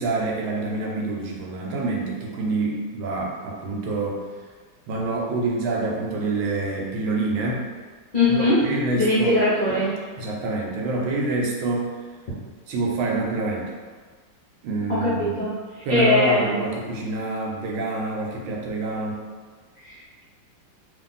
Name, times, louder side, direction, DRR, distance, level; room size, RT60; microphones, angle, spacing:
voice 1, 0.0-4.2 4.9-7.7 8.3-9.4 10.2-11.9 12.7-13.7 14.6-15.5 15.8-19.2, right 2 dB, 85° right, -1 dB, 1.4 m, -27 dB
voice 2, 8.1-8.6 8.9-9.9 14.9-15.0 15.4-15.5 15.9-16.6 19.8-19.9, left 2 dB, 50° left, -11 dB, 0.6 m, -20 dB
3.0 x 2.6 x 3.8 m, 1.5 s
omnidirectional pair, 2.1 m